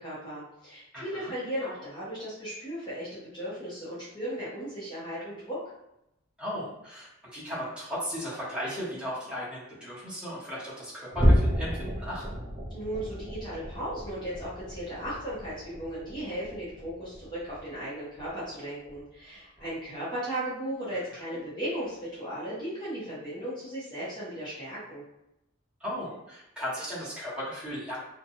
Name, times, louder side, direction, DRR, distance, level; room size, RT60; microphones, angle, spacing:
voice 1, 0.0-5.6 12.7-25.0, right 1 dB, 20° left, -9 dB, 0.7 m, -36 dB
voice 2, 0.9-1.3 6.4-12.2 21.1-21.2 25.8-28.0, equal, 5° right, -9 dB, 0.9 m, -36 dB
sound 1, 11.1-17.8 18.1-18.4 18.9-19.0 19.6-19.7, equal, 25° right, 0.5 m, -30 dB
2.7 x 2.2 x 2.6 m, 0.85 s
head